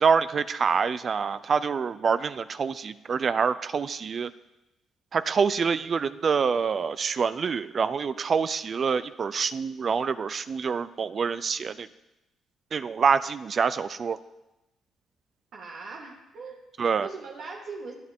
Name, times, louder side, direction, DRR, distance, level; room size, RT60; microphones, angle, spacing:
voice 1, 0.0-4.3 5.1-11.9 12.7-14.2 16.8-17.1, right 6 dB, 40° right, 14 dB, 0.4 m, -26 dB
voice 2, 15.5-16.7 17.0-17.9, right 4 dB, 65° right, -1 dB, 1.8 m, -40 dB
19.0 x 11.5 x 3.7 m, 0.97 s
cardioid pair, 115°, 0 cm